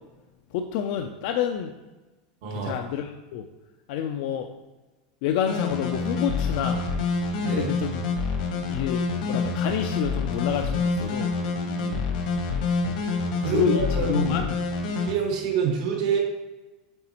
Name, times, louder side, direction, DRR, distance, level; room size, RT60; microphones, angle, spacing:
voice 1, 0.5-1.7 2.5-3.5 3.9-4.5 5.2-6.8 7.5-8.0 8.7-11.3 12.8-13.0 13.4-14.6, left 8 dB, 60° left, 5 dB, 0.4 m, -28 dB
voice 2, 2.4-2.8 7.4-7.7 11.6-12.3 13.4-14.3 15.0-16.2, right 6 dB, 65° right, 1 dB, 1.6 m, -27 dB
sound 1, 5.5-15.1, left 4 dB, 75° left, 1.1 m, -27 dB
7.7 x 4.1 x 2.9 m, 1.1 s
supercardioid pair, 135°, 4 cm